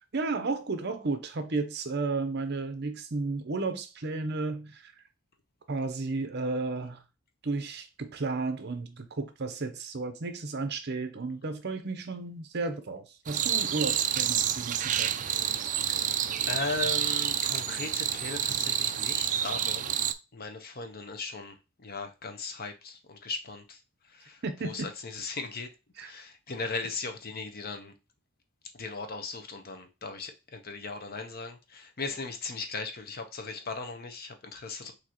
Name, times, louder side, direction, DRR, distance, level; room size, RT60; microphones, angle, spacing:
voice 1, 0.1-4.9 5.7-7.0 7.4-15.2 24.4-24.9 26.0-26.1, right 3 dB, 55° right, 0.8 m, -33 dB
sound 1, 13.3-20.1, right 10 dB, 40° right, 0.3 m, -29 dB
voice 2, 15.8-19.9 20.3-25.7 26.0-27.9 28.7-34.9, left 3 dB, 45° left, 0.8 m, -38 dB
6.2 x 2.8 x 2.9 m
head